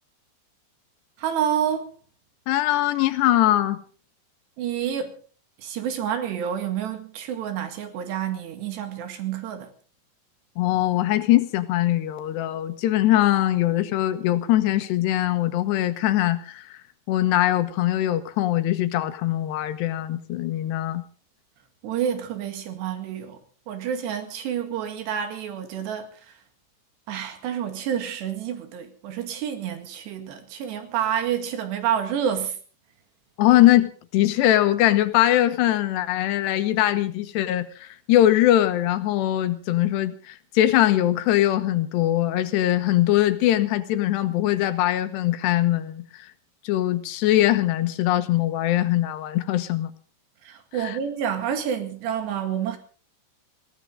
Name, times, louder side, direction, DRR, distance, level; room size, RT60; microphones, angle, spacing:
voice 1, 1.2-1.9 4.6-5.2 5.6-9.7 21.8-23.4 23.7-26.1 27.1-32.6 50.5-52.8, right 9 dB, 80° right, 4.2 m, -28 dB
voice 2, 2.5-3.8 10.6-16.8 17.1-21.0 33.4-46.3 46.6-49.9 50.8-51.0, left 14 dB, 85° left, 3.2 m, -22 dB
21.0 x 17.0 x 3.9 m
omnidirectional pair, 4.9 m